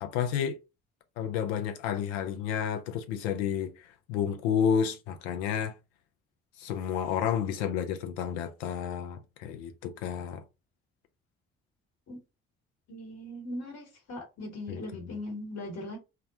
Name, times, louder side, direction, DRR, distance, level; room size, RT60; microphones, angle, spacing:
voice 1, 0.0-0.6 1.2-5.7 6.6-10.4 14.7-15.1, left 8 dB, 75° left, 0.5 m, -31 dB
voice 2, 12.9-16.0, left 1 dB, 50° left, 1.3 m, -39 dB
2.3 x 2.1 x 2.8 m
hypercardioid pair, 45°, 32 cm